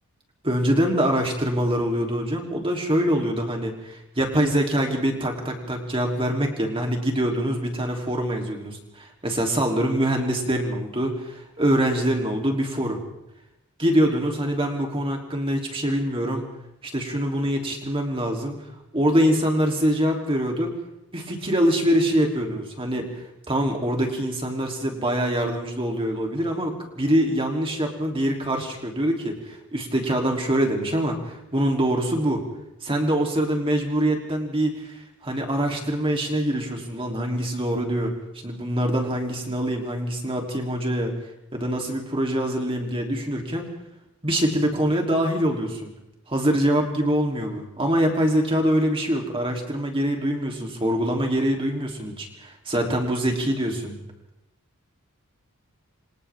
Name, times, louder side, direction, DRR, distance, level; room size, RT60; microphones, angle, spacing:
voice 1, 0.4-13.0 13.8-16.5 16.9-18.6 18.9-20.7 21.1-23.1 23.5-32.4 32.8-34.9 35.2-38.1 38.4-41.1 41.5-43.6 44.2-45.9 46.3-54.0, equal, 25° right, 1 dB, 3.4 m, -24 dB
28.5 x 25.5 x 3.7 m, 0.86 s
head